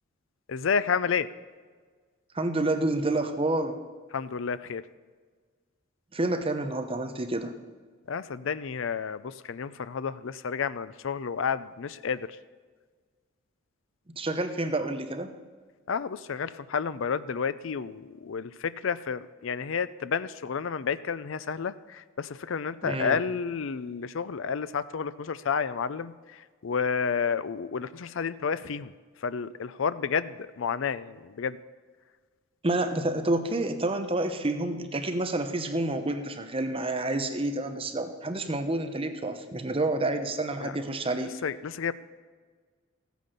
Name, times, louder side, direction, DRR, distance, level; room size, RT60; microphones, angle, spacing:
voice 1, 0.5-1.3 4.1-4.8 8.1-12.4 15.9-26.1 26.6-28.9 29.2-31.6 40.6-40.7 41.4-41.9, left 6 dB, 65° left, 15 dB, 0.5 m, -30 dB
voice 2, 2.3-3.8 6.1-7.5 14.2-15.3 22.8-23.2 32.6-41.3, right 2 dB, 25° right, 7 dB, 0.9 m, -29 dB
14.5 x 9.2 x 6.7 m, 1.5 s
head